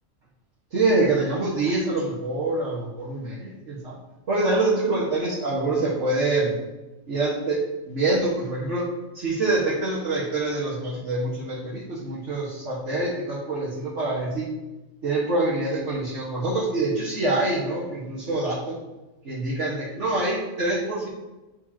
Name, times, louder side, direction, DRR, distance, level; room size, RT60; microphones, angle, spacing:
voice 1, 0.7-3.9 4.3-6.6 7.1-8.8 9.1-14.5 15.0-18.8 19.2-21.1, right 2 dB, 60° right, -8 dB, 1.7 m, -25 dB
9.3 x 5.0 x 2.8 m, 1.1 s
omnidirectional pair, 1.4 m